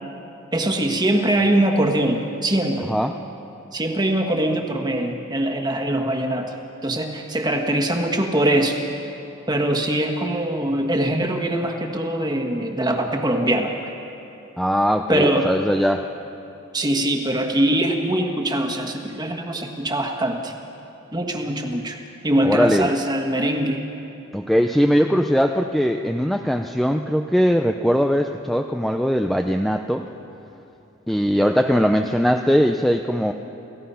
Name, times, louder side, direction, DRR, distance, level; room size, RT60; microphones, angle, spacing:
voice 1, 0.5-2.9 3.7-6.5 6.8-8.8 9.5-13.9 15.1-15.5 16.7-20.5 21.1-23.8, right 1 dB, 20° right, 3 dB, 1.6 m, -22 dB
voice 2, 14.6-16.0 22.4-22.9 24.3-30.0 31.1-33.3, equal, ahead, 4 dB, 0.5 m, -20 dB
29.0 x 16.0 x 5.7 m, 3.0 s
head